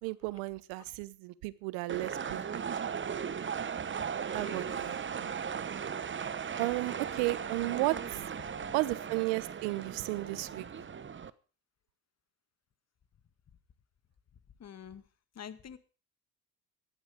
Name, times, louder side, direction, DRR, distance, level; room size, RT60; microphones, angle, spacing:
voice 1, 0.0-2.6 4.3-5.3 6.6-8.3 8.7-10.7, right 21 dB, 85° right, 19 dB, 0.9 m, -34 dB
sound 1, 1.9-11.3, right 7 dB, 30° right, 1.1 m, -37 dB
voice 2, 4.3-4.7 14.6-15.0 15.4-15.8, left 8 dB, 45° left, 11 dB, 1.9 m, -47 dB
14.0 x 11.0 x 5.1 m, 0.37 s
supercardioid pair, 70°, 37 cm